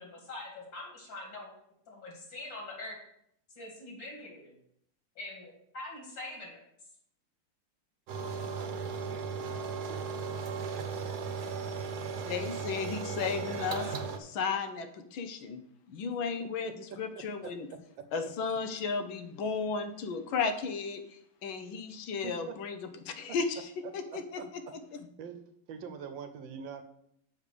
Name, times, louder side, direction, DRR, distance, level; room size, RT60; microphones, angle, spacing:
voice 1, 0.0-1.5 1.9-3.0 3.6-4.5 5.2-6.6, left 2 dB, 75° left, -1 dB, 2.9 m, -43 dB
sound 1, 8.1-14.2, right 5 dB, 65° right, 1.3 m, -36 dB
voice 2, 12.3-15.6 15.9-17.7 18.1-22.8 23.1-24.6, left 5 dB, 90° left, 8 dB, 1.7 m, -34 dB
voice 3, 16.4-17.5 18.0-18.1 22.2-22.6 23.8-23.9 24.4-24.5 25.2-25.4 25.7-26.8, right 7 dB, 80° right, 8 dB, 1.5 m, -43 dB
6.4 x 5.3 x 6.7 m, 0.72 s
omnidirectional pair, 2.1 m